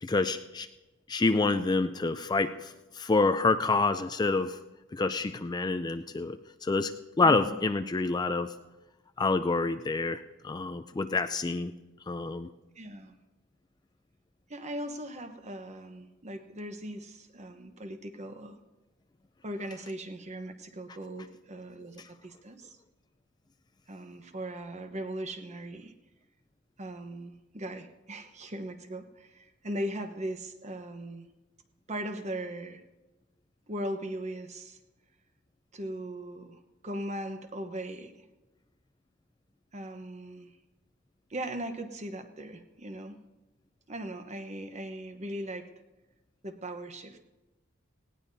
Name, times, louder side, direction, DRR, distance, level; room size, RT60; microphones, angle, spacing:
voice 1, 0.0-0.7 1.1-4.6 4.9-8.5 9.2-11.7 12.1-12.5, left 3 dB, 20° left, 9 dB, 0.4 m, -27 dB
voice 2, 12.8-13.1 14.5-18.6 19.4-22.8 23.9-26.0 26.8-31.3 31.9-32.8 33.7-34.8 35.7-38.2 39.7-40.5 41.3-43.2 43.9-45.7 46.4-47.2, right 1 dB, 35° right, 8 dB, 1.0 m, -39 dB
18.5 x 17.5 x 2.7 m, 1.1 s
head